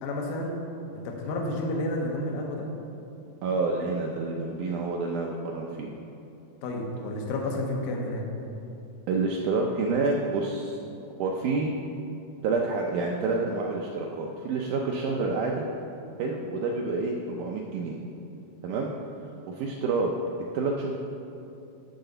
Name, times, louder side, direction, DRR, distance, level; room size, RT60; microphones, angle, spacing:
voice 1, 0.0-0.6 1.0-2.7 6.6-8.2, left 1 dB, 75° left, 0 dB, 2.5 m, -30 dB
voice 2, 3.4-5.9 9.1-10.8 11.2-11.7 12.4-15.7 16.2-18.0 18.6-18.9 19.5-20.1 20.5-21.0, right 3 dB, 80° right, 0 dB, 1.8 m, -28 dB
12.0 x 4.0 x 6.7 m, 2.8 s
omnidirectional pair, 4.2 m